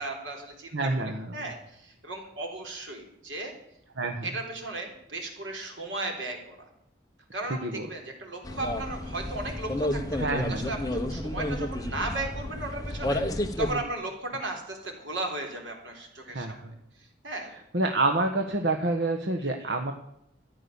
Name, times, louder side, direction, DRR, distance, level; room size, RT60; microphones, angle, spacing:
voice 1, 0.0-1.0 1.3-3.5 4.2-6.6 7.3-17.5 19.4-19.7, right 2 dB, 85° right, 2 dB, 3.9 m, -36 dB
voice 2, 0.7-1.5 4.0-4.3 7.6-7.9 10.2-10.7 16.3-16.7 17.7-19.9, right 2 dB, 65° right, 3 dB, 1.3 m, -28 dB
sound 1, 8.4-13.8, left 1 dB, 20° left, 1.0 m, -31 dB
14.0 x 10.0 x 7.0 m, 0.79 s
head